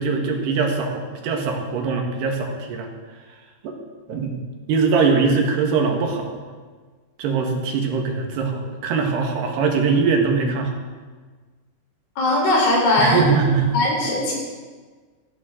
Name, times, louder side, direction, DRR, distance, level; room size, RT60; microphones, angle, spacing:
voice 1, 0.0-2.9 3.6-3.8 4.1-4.4 4.7-6.4 7.2-10.8 13.0-13.8, right 5 dB, 85° right, 2 dB, 3.8 m, -22 dB
voice 2, 12.2-13.2 13.7-14.3, left 2 dB, 70° left, -3 dB, 6.1 m, -19 dB
17.5 x 14.5 x 3.8 m, 1.4 s
omnidirectional pair, 4.7 m